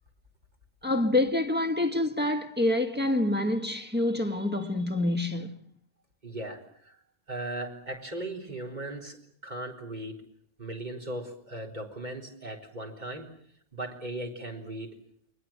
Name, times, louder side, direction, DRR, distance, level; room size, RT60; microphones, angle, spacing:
voice 1, 0.8-5.5, left 2 dB, 10° right, 1.5 m, -27 dB
voice 2, 6.2-7.0 7.3-9.2 9.4-10.2 10.6-13.3 13.7-15.1, right 1 dB, 40° right, 4.3 m, -38 dB
29.5 x 22.5 x 7.4 m
omnidirectional pair, 1.2 m